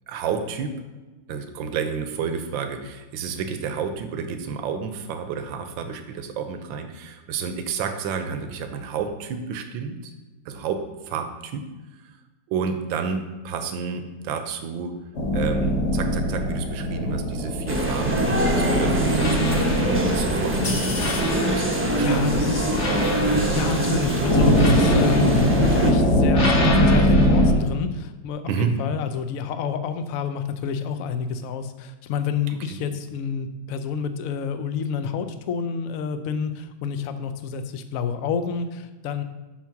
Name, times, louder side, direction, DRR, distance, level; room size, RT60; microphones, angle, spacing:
voice 1, 0.1-0.8 1.3-10.1 10.4-11.7 12.0-12.1 12.5-15.0 15.3-20.9 21.3-22.4 28.5-28.7 32.7-32.8, right 6 dB, 75° right, 7 dB, 1.5 m, -30 dB
sound 1, 15.2-27.5, equal, 40° left, 1.3 m, -22 dB
sound 2, 17.7-25.9, right 1 dB, 15° right, 0.5 m, -24 dB
voice 2, 21.7-22.7 23.5-39.2, left 6 dB, 65° left, 9 dB, 0.8 m, -29 dB
7.4 x 5.6 x 5.8 m, 1.2 s
omnidirectional pair, 2.1 m